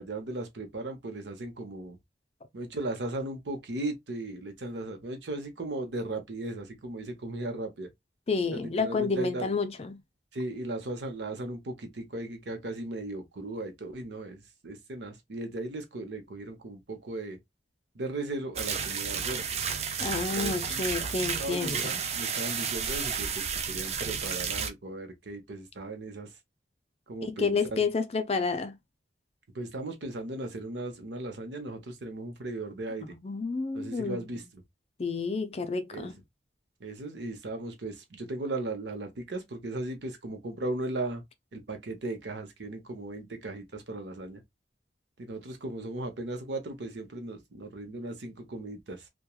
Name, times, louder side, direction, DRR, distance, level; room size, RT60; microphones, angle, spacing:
voice 1, 0.0-2.0 2.5-7.9 8.5-9.5 10.3-17.4 17.9-19.4 20.3-20.9 21.4-26.3 27.1-27.8 29.5-33.1 33.7-34.6 35.9-36.1 36.8-41.2 41.5-44.4 45.2-49.1, right 2 dB, 85° right, 0.8 m, -37 dB
voice 2, 8.3-10.0 20.0-21.9 27.2-28.8 33.0-34.2 35.0-36.2, left 4 dB, 35° left, 0.4 m, -30 dB
sound 1, 18.6-24.7, right 6 dB, 40° right, 0.4 m, -32 dB
3.0 x 2.2 x 2.2 m
head